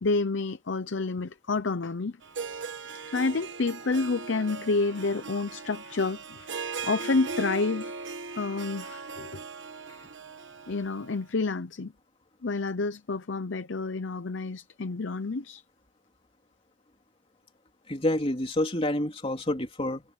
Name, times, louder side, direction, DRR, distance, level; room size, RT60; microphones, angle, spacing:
voice 1, 0.0-2.2 3.1-6.5 6.8-9.4 9.9-10.0 10.7-11.9 12.4-15.6, left 3 dB, 70° left, 0.7 m, -29 dB
Harp, 2.2-11.2, right 4 dB, 65° right, 1.3 m, -39 dB
voice 2, 17.9-20.0, left 1 dB, 30° left, 3.0 m, -28 dB
head